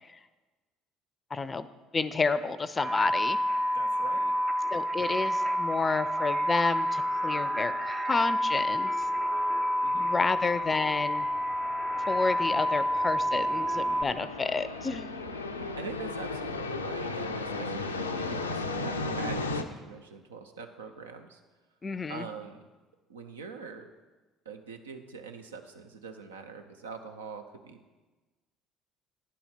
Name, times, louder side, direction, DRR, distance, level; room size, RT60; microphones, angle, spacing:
voice 1, 1.3-1.7 1.9-3.4 4.7-8.9 10.0-11.3 12.1-15.1 21.8-22.2, left 4 dB, 30° left, 14 dB, 0.4 m, -30 dB
sound 1, 2.8-14.0, equal, 35° right, 0.5 m, -29 dB
voice 2, 3.7-4.3 9.8-10.1 15.5-21.4 22.1-22.6 23.1-23.9 24.5-27.9, right 5 dB, 85° right, 6 dB, 0.5 m, -43 dB
sound 2, 9.0-19.6, left 3 dB, 90° left, 0.4 m, -36 dB
9.8 x 4.2 x 5.8 m, 1.2 s
figure-of-eight pair, 55°, 0 cm